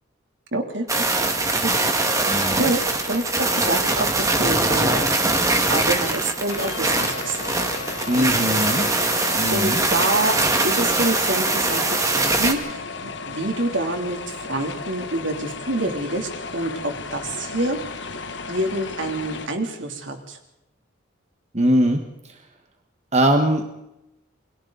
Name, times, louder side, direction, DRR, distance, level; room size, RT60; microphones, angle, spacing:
voice 1, 0.5-0.9 1.2-1.3 1.6-1.7 2.4-5.1 5.7-7.4 8.1-8.4 9.1-9.2 9.5-10.4 10.6-17.8 18.5-20.4, right 2 dB, 70° right, 4 dB, 3.1 m, -27 dB
sound 1, 0.9-12.5, right 2 dB, 15° right, 1.9 m, -22 dB
voice 2, 2.3-2.7 8.1-8.9 9.3-9.8 21.5-22.0 22.3-22.4 23.1-23.6, equal, 35° right, 5 dB, 1.5 m, -21 dB
sound 2, 6.5-19.5, left 4 dB, 65° left, 1.4 m, -34 dB
29.0 x 22.5 x 4.0 m, 0.87 s
head